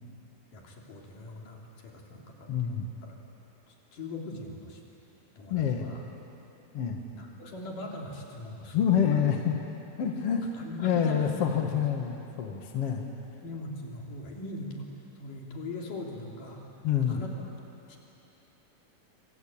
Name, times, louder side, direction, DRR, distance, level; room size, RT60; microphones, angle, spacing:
voice 1, 0.5-2.8 3.0-3.2 3.7-4.8 5.4-6.0 7.1-9.0 10.6-11.3 13.4-14.9 15.2-16.7 17.1-17.5 17.9-18.0, left 1 dB, 65° left, -1 dB, 4.7 m, -41 dB
voice 2, 2.5-2.9 5.5-5.9 6.7-7.0 8.7-9.6 10.0-10.5 10.8-13.0 16.8-17.2, left 8 dB, 50° left, 2 dB, 2.3 m, -27 dB
26.5 x 25.5 x 8.8 m, 3.0 s
omnidirectional pair, 4.1 m